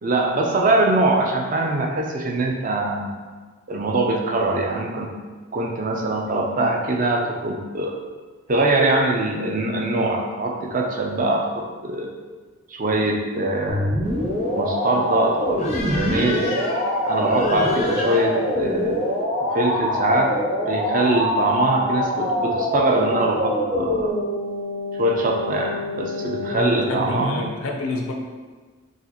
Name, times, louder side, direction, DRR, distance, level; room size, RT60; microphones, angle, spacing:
voice 1, 0.0-3.1 3.7-5.1 5.5-8.0 8.5-12.1 12.7-13.9 14.5-16.5 17.1-19.0 19.4-20.3 20.7-24.1 25.0-27.4, right 2 dB, 40° right, 1 dB, 0.4 m, -22 dB
sound 1, 13.7-26.5, left 1 dB, 65° right, 1.0 m, -25 dB
sound 2, 14.0-19.2, left 2 dB, 30° left, 0.5 m, -35 dB
voice 2, 26.5-28.1, left 2 dB, 90° left, 2 dB, 0.6 m, -28 dB
4.8 x 2.5 x 2.9 m, 1.4 s
head